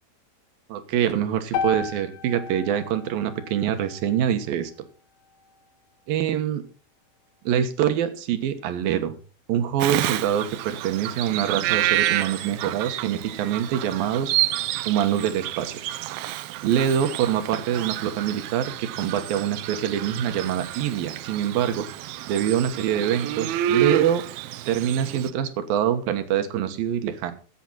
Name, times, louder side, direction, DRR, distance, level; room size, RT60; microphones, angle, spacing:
voice 1, 0.7-4.7 6.1-6.6 7.4-9.2 9.5-14.4 14.9-15.8 16.6-21.9 22.3-24.2 24.7-27.3, right 10 dB, 65° right, 9 dB, 2.6 m, -25 dB
sound 1, 1.5-5.7, left 4 dB, 70° left, 2.3 m, -34 dB
Bird vocalization bird call bird song, 9.8-25.3, right 12 dB, 85° right, 2.1 m, -29 dB
16.5 x 8.7 x 4.2 m, 0.35 s
omnidirectional pair, 5.3 m